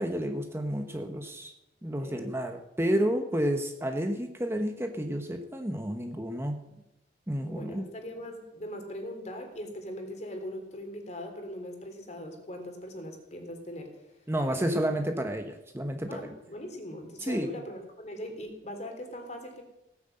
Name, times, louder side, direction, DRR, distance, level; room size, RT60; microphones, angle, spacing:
voice 1, 0.0-1.5 1.8-6.6 7.3-7.8 14.3-16.3 17.2-17.6, equal, 15° right, 5 dB, 1.0 m, -30 dB
voice 2, 2.0-2.3 6.6-6.8 7.4-13.9 14.5-14.8 16.1-19.6, left 1 dB, 40° left, 4 dB, 3.3 m, -40 dB
17.5 x 9.6 x 7.8 m, 0.90 s
head